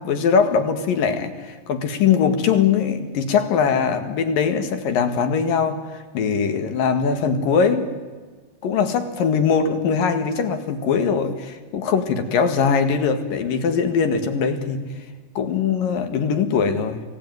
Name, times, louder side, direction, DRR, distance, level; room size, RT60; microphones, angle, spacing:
voice 1, 0.0-7.9 8.6-14.9 15.3-17.0, left 6 dB, 60° left, 7 dB, 3.4 m, -21 dB
27.5 x 18.5 x 9.5 m, 1.4 s
omnidirectional pair, 4.7 m